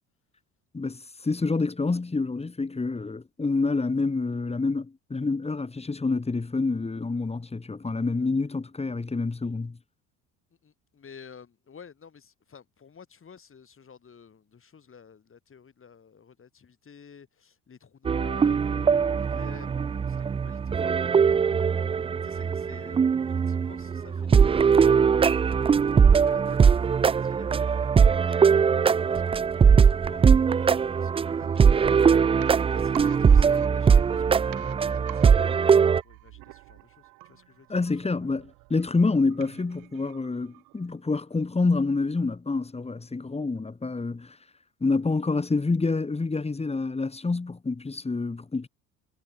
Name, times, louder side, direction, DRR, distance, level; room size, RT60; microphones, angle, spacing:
voice 1, 0.7-9.8 37.7-38.4 38.7-44.4 44.8-48.7, left 3 dB, 15° left, 2.2 m, -27 dB
voice 2, 10.5-21.2 21.8-21.9 22.2-31.1 31.4-32.2 32.7-38.4, left 6 dB, 35° left, 5.4 m, -51 dB
sound 1, 18.0-36.0, right 6 dB, 15° right, 0.3 m, -21 dB
sound 2, 31.4-41.1 41.4-41.5, right 24 dB, 75° right, 4.4 m, -48 dB
supercardioid pair, 70°, 35 cm